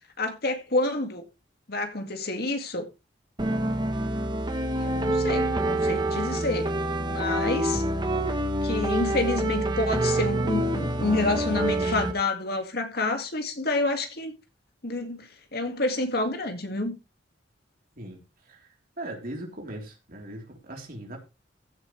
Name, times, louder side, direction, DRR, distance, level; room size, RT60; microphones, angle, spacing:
voice 1, 0.2-1.2 1.7-2.8 4.8-6.7 7.0-7.8 8.6-14.3 14.8-16.9, left 2 dB, 55° left, 2.2 m, -28 dB
sound 1, 3.4-12.1, right 1 dB, 25° right, 1.1 m, -27 dB
voice 2, 18.0-21.2, right 1 dB, 50° right, 3.8 m, -40 dB
15.5 x 8.4 x 3.3 m
head